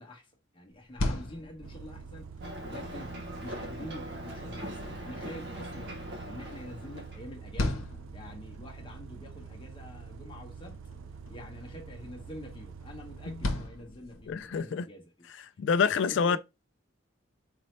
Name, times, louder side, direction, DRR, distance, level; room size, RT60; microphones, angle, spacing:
voice 1, 0.0-2.3 2.6-3.1 3.4-7.8 8.1-10.8 11.3-15.3 16.1-16.4, left 1 dB, 25° left, 0.9 m, -46 dB
sound 1, 0.7-14.7, left 1 dB, 85° left, 0.8 m, -40 dB
Bus, 1.6-13.7, right 5 dB, 75° right, 0.3 m, -46 dB
Ocean, 2.4-7.3, equal, 55° right, 1.0 m, -41 dB
voice 2, 14.3-14.9 15.6-16.4, left 6 dB, 60° left, 0.3 m, -26 dB
4.1 x 2.7 x 3.1 m
head